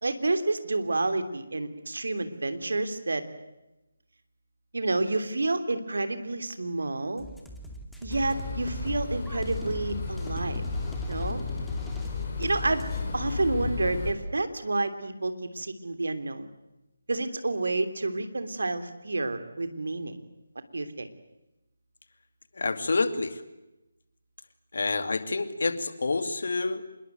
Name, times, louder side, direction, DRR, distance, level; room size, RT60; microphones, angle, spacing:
voice 1, 0.0-3.2 4.7-7.2 8.0-10.6 11.1-11.4 12.4-12.9 13.1-16.5 17.1-20.2 20.7-21.1, right 2 dB, 65° right, 10 dB, 3.1 m, -29 dB
sound 1, 7.2-13.0, right 1 dB, ahead, 2.4 m, -41 dB
sound 2, 8.1-14.1, left 4 dB, 25° left, 6.5 m, -33 dB
voice 2, 22.6-23.4 24.7-26.8, left 3 dB, 55° left, 11 dB, 2.5 m, -28 dB
26.5 x 21.5 x 9.2 m, 0.97 s
figure-of-eight pair, 155°, 0 cm